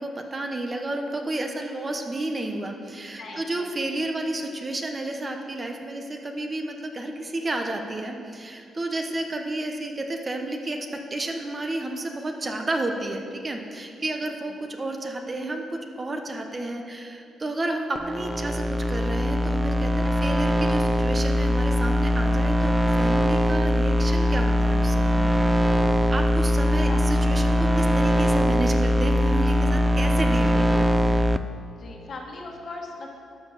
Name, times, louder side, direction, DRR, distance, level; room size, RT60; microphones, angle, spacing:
voice 1, 0.0-25.5 25.9-31.1, right 2 dB, 30° right, 3 dB, 1.1 m, -31 dB
sound 1, 18.0-31.4, equal, 10° right, 0.4 m, -21 dB
voice 2, 31.8-33.2, left 3 dB, 55° left, 0 dB, 1.7 m, -39 dB
12.5 x 5.2 x 6.9 m, 2.4 s
cardioid pair, 85°, 0 cm